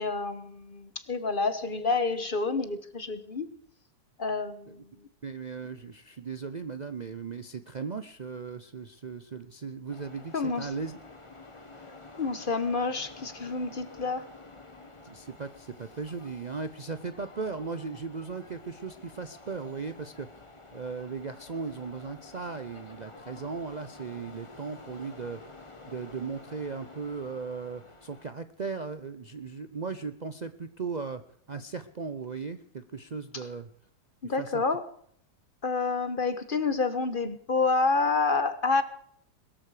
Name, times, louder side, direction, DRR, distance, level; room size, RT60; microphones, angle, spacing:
voice 1, 0.0-3.5 4.2-4.8 10.3-10.7 12.2-14.2 34.2-34.8 35.6-38.8, left 4 dB, 35° left, 12 dB, 1.2 m, -28 dB
voice 2, 5.2-11.0 15.0-20.4 20.7-25.4 25.9-33.7 34.2-34.6, right 5 dB, 80° right, 10 dB, 0.4 m, -37 dB
sound 1, 9.9-28.3, left 3 dB, 20° left, 1.4 m, -50 dB
21.5 x 13.5 x 4.9 m, 0.63 s
omnidirectional pair, 1.9 m